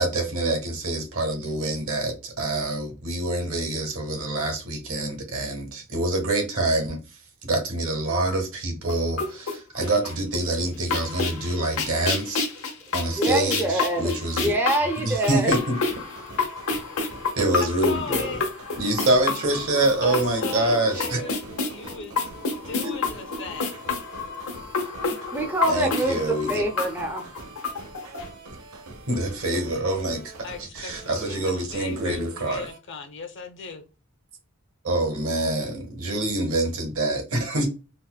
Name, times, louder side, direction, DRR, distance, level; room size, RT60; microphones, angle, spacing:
voice 1, 0.0-7.0 7.4-12.4 12.9-14.5 15.0-15.8 17.4-18.3 18.8-21.2 22.8-22.9 25.7-26.6 29.1-32.7 34.8-37.7, right 2 dB, 70° right, 1.1 m, -26 dB
sound 1, 8.9-10.4 10.7-28.3, left 4 dB, 85° left, 0.9 m, -29 dB
voice 2, 13.2-15.6 25.3-27.3, right 1 dB, 10° right, 0.4 m, -25 dB
sound 2, 15.5-32.8, right 3 dB, 90° right, 0.7 m, -44 dB
voice 3, 17.6-18.4 20.0-22.4 22.6-23.9 30.4-33.8, left 3 dB, 55° left, 0.6 m, -37 dB
4.0 x 2.1 x 2.3 m
head